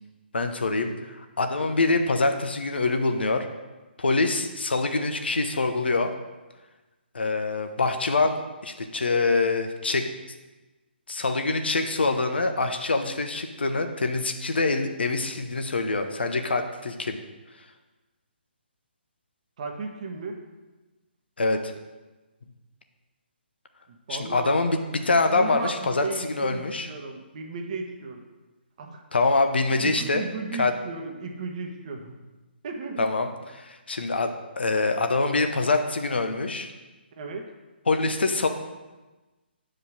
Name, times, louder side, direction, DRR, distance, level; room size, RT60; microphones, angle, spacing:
voice 1, 0.3-3.5 4.0-6.1 7.1-10.1 11.1-17.2 21.4-21.7 24.1-24.8 25.0-26.9 29.1-30.2 30.6-30.7 33.0-33.3 33.5-36.7 37.9-38.5, left 3 dB, 65° left, 6 dB, 0.9 m, -25 dB
voice 2, 19.6-20.4 23.9-24.6 25.3-28.2 28.8-29.0 29.8-32.2 32.6-33.1 37.2-37.5, right 4 dB, 40° right, 3 dB, 1.2 m, -35 dB
8.2 x 5.1 x 6.1 m, 1.2 s
figure-of-eight pair, 140°, 6 cm